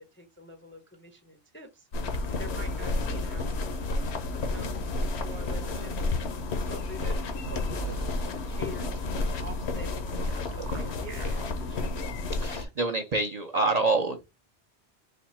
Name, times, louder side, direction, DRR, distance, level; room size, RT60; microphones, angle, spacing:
voice 1, 0.0-6.0 6.6-8.0 8.3-10.1 10.5-11.9, equal, 15° left, 0.5 m, -46 dB
sound 1, 1.9-12.6, left 2 dB, 70° left, 1.0 m, -31 dB
sound 2, 7.4-8.1 10.1-11.4, right 6 dB, 90° right, 1.1 m, -39 dB
voice 2, 12.4-14.3, right 3 dB, 45° right, 0.6 m, -26 dB
4.2 x 2.3 x 4.2 m
omnidirectional pair, 1.1 m